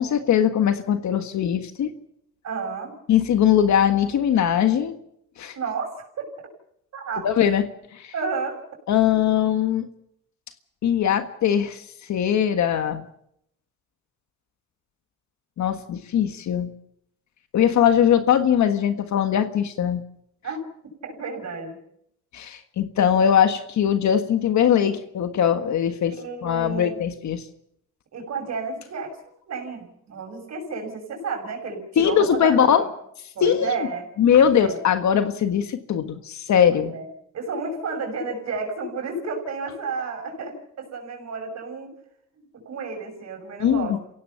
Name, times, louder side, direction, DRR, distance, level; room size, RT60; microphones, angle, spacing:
voice 1, 0.0-1.9 3.1-4.9 5.4-5.5 7.2-7.6 7.9-8.1 8.9-9.9 10.8-11.8 12.1-13.0 15.6-16.7 17.5-20.0 22.3-26.1 26.4-27.4 32.0-32.8 33.4-33.9 34.2-36.9 43.6-44.0, left 9 dB, 65° left, 8 dB, 1.6 m, -20 dB
voice 2, 2.4-2.9 5.5-6.5 6.9-7.3 8.1-8.6 20.4-20.6 21.0-21.8 26.1-27.2 28.1-29.2 29.5-32.9 33.3-34.1 34.4-34.8 36.7-37.1 37.3-41.9 42.4-44.0, right 4 dB, 60° right, 3 dB, 6.6 m, -31 dB
28.0 x 17.0 x 5.8 m, 0.72 s
cardioid pair, 90°, 30 cm